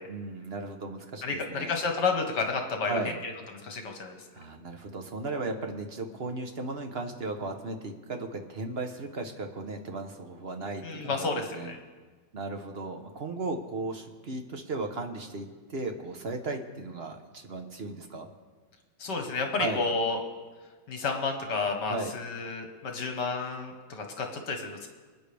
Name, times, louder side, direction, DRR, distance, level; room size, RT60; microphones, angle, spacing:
voice 1, 0.1-1.7 2.9-3.1 4.3-11.7 12.3-18.3 19.6-19.9 21.9-22.1, right 3 dB, 40° right, 4 dB, 1.0 m, -36 dB
voice 2, 1.2-3.3 3.6-4.2 10.8-11.8 19.0-20.2 20.9-24.9, left 4 dB, 70° left, 3 dB, 1.9 m, -31 dB
25.0 x 9.2 x 3.4 m, 1.4 s
omnidirectional pair, 2.0 m